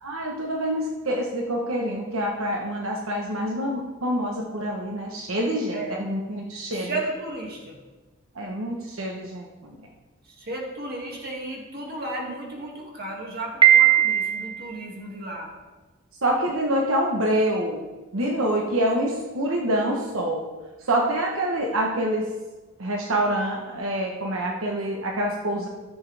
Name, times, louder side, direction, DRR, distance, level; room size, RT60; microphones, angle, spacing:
voice 1, 0.0-6.9 8.3-9.8 16.2-17.8 18.1-20.4 20.8-22.2 22.8-25.7, right 1 dB, 85° right, 0 dB, 1.2 m, -26 dB
voice 2, 5.7-6.0 6.7-7.8 10.3-15.5, right 2 dB, 50° right, -1 dB, 2.2 m, -34 dB
Piano, 13.6-14.6, right 10 dB, 25° right, 0.7 m, -17 dB
14.5 x 7.3 x 3.4 m, 1.2 s
head